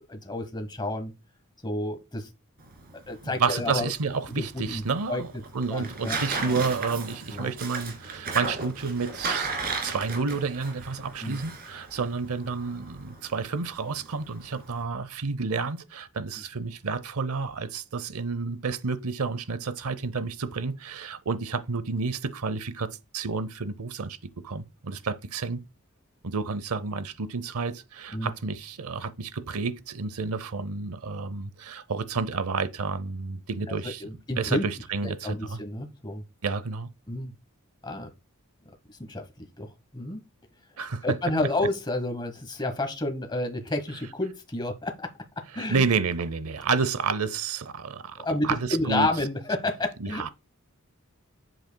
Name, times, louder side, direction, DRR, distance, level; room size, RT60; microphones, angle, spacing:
voice 1, 0.1-1.1 1.6-2.3 3.1-3.9 4.3-4.8 5.1-5.2 5.7-6.2 6.4-6.5 7.3-7.5 11.2-11.4 28.1-28.3 33.7-34.6 35.0-36.2 37.1-37.3 37.8-38.1 39.0-39.7 39.9-40.2 41.0-45.1 45.4-45.8 48.2-50.2, left 2 dB, 20° left, 1.1 m, -30 dB
Tearing, 2.6-14.8, right 4 dB, 45° right, 2.4 m, -36 dB
voice 2, 3.2-5.3 5.5-9.5 9.8-25.6 26.2-34.0 34.4-35.6 36.4-36.9 40.8-41.2 45.5-49.1 50.0-50.3, right 4 dB, 90° right, 0.7 m, -30 dB
7.9 x 7.6 x 2.2 m
head